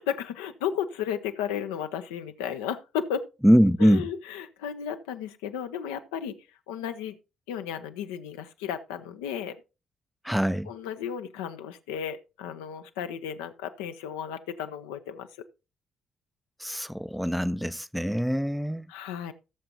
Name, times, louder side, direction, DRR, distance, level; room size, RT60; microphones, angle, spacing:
voice 1, 0.0-3.3 3.8-6.4 6.7-7.2 7.5-9.6 10.7-15.3 18.9-19.3, left 8 dB, 75° left, 0.6 m, -34 dB
voice 2, 3.4-4.1 10.2-10.7 16.6-18.9, equal, ahead, 0.5 m, -23 dB
16.5 x 6.8 x 2.8 m
figure-of-eight pair, 45°, 0 cm